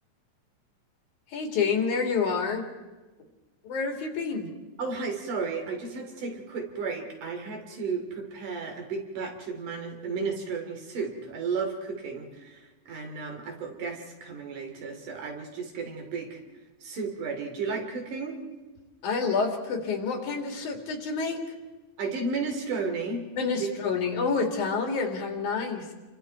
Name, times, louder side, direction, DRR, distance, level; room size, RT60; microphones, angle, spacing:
voice 1, 1.3-2.6 3.6-4.5 19.0-21.4 23.4-25.9, left 5 dB, 70° left, 3 dB, 3.9 m, -28 dB
voice 2, 4.8-16.4 16.8-18.4 22.0-23.2 23.6-24.0, right 4 dB, 80° right, 3 dB, 4.4 m, -33 dB
30.0 x 24.0 x 4.6 m, 1.2 s
omnidirectional pair, 3.6 m